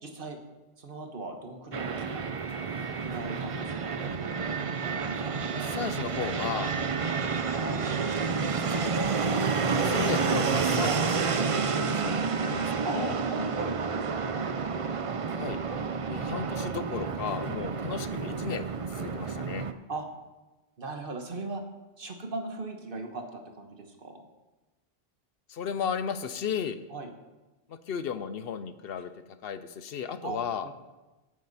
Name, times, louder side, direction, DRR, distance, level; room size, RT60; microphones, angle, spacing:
voice 1, 0.0-0.4 0.8-2.3 3.0-4.0 7.5-7.8 10.8-11.0 12.8-14.5 19.9-20.0 20.8-21.6 22.0-24.2 26.9-27.1 30.2-30.8, right 2 dB, 60° right, 4 dB, 1.5 m, -38 dB
Fixed-wing aircraft airplane, 1.7-19.7, right 5 dB, 40° right, 0.5 m, -30 dB
voice 2, 5.5-6.7 8.4-9.1 9.7-13.2 15.3-15.6 16.1-19.7 25.5-26.8 27.7-29.1 29.4-30.7, left 7 dB, 70° left, 12 dB, 0.8 m, -35 dB
13.0 x 8.6 x 4.1 m, 1.1 s
omnidirectional pair, 1.0 m